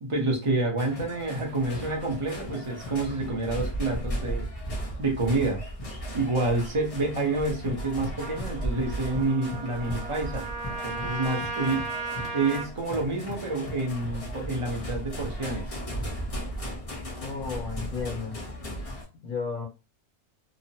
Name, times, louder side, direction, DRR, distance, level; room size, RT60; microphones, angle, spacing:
voice 1, 0.0-4.5 5.0-5.6 6.1-10.5 10.8-11.8 12.3-15.6, right 2 dB, 35° right, 0.5 m, -28 dB
sound 1, 0.8-19.0, equal, 30° left, 0.7 m, -36 dB
Trumpet, 8.2-12.7, right 4 dB, 70° right, 1.0 m, -36 dB
voice 2, 17.2-18.4 19.2-19.6, left 5 dB, 80° left, 1.3 m, -33 dB
3.0 x 2.1 x 2.7 m
omnidirectional pair, 1.5 m